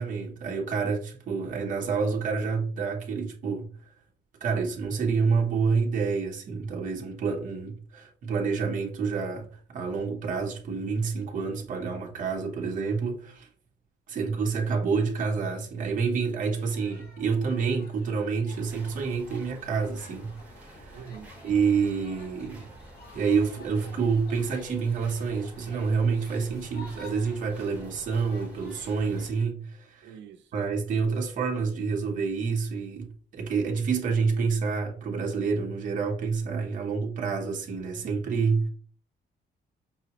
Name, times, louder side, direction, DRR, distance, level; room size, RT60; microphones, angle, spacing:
voice 1, 0.0-3.7 4.4-13.5 14.1-21.0 21.4-22.7 23.1-30.1 30.5-38.7, right 5 dB, 45° right, 0.8 m, -28 dB
sound 1, 16.6-29.4, left 3 dB, 55° left, 1.1 m, -52 dB
sound 2, 18.5-29.3, right 1 dB, 5° right, 0.9 m, -49 dB
voice 2, 20.9-21.3 30.0-30.6, right 7 dB, 85° right, 0.6 m, -45 dB
5.5 x 2.0 x 2.8 m
cardioid pair, 165°, 18 cm